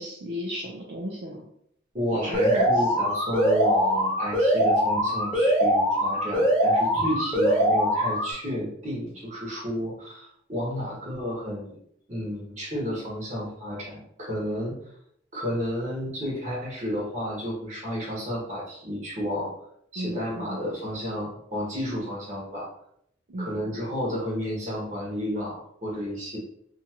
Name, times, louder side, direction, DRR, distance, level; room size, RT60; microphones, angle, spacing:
voice 1, 0.0-1.4 2.2-2.8 20.0-20.6 23.3-23.7, equal, 65° right, -3 dB, 0.5 m, -35 dB
voice 2, 1.9-11.8 12.1-14.8 15.3-19.6 19.9-22.7 23.4-26.4, equal, 40° right, -4 dB, 1.1 m, -31 dB
Alarm, 2.3-8.3, equal, 10° left, 0.7 m, -22 dB
2.7 x 2.4 x 2.8 m, 0.70 s
head